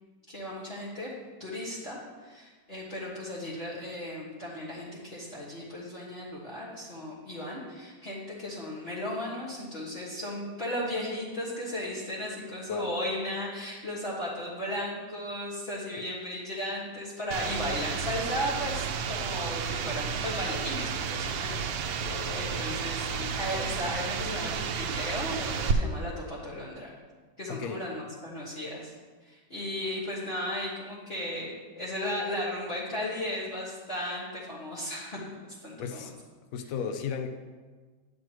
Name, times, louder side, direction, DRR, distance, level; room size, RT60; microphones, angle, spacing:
voice 1, 0.3-1.1 1.4-26.9 27.4-28.9 29.2-35.2 35.6-36.1, left 1 dB, 35° left, -9 dB, 1.7 m, -35 dB
sound 1, 17.3-25.7, right 6 dB, 90° right, 1.4 m, -32 dB
voice 2, 22.0-22.8 27.5-27.8 35.8-36.1 36.5-37.3, left 6 dB, 70° left, 7 dB, 0.8 m, -36 dB
9.6 x 7.7 x 3.0 m, 1.4 s
omnidirectional pair, 2.0 m